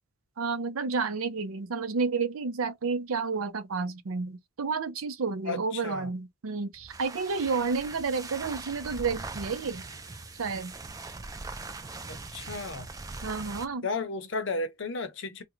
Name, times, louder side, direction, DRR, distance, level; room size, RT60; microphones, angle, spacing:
voice 1, 0.4-9.8 10.4-10.7 13.2-13.9, right 4 dB, 80° right, 0.6 m, -31 dB
voice 2, 5.4-6.1 12.1-12.9 13.8-15.4, left 3 dB, 60° left, 0.6 m, -34 dB
sound 1, 6.7-13.7, right 3 dB, 15° right, 0.3 m, -41 dB
3.6 x 2.1 x 3.1 m
head